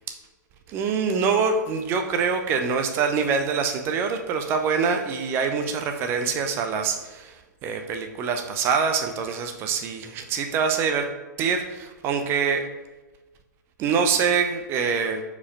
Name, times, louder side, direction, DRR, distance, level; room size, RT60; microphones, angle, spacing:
voice 1, 0.7-7.3 7.6-11.1 11.4-12.7 13.8-15.2, right 5 dB, 25° right, 6 dB, 0.6 m, -25 dB
4.7 x 4.2 x 5.5 m, 1.2 s
figure-of-eight pair, 115°, 10 cm